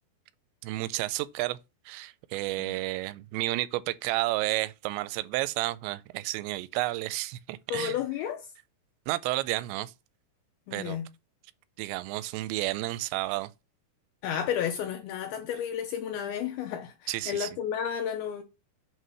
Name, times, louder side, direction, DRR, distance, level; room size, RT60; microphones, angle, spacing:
voice 1, 0.6-1.6 1.9-8.0 9.1-9.9 10.7-11.0 11.8-13.5 17.1-17.5, right 18 dB, 90° right, 2.8 m, -31 dB
voice 2, 7.7-8.5 10.7-11.1 14.2-18.4, left 9 dB, 90° left, 2.2 m, -32 dB
7.6 x 3.1 x 5.5 m
omnidirectional pair, 5.0 m